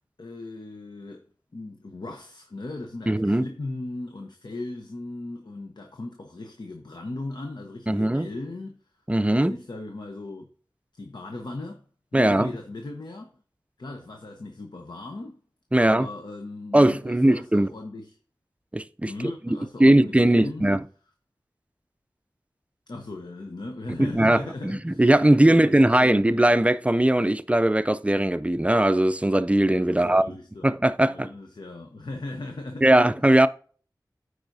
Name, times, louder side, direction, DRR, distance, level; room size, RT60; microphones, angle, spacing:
voice 1, 0.2-1.3 1.5-8.8 9.3-10.5 10.9-11.8 12.1-13.3 13.8-15.4 15.8-18.2 19.0-20.7 22.9-25.1 25.5-26.4 29.9-30.7 31.1-33.1, left 2 dB, 75° left, 0.8 m, -37 dB
voice 2, 3.1-3.4 7.9-8.3 9.1-9.5 12.1-12.5 15.7-16.1 16.7-17.7 18.7-20.8 24.0-30.2 30.6-31.3 32.8-33.5, right 1 dB, 15° right, 0.4 m, -20 dB
13.5 x 4.8 x 2.7 m
wide cardioid pair, 55°, 8 cm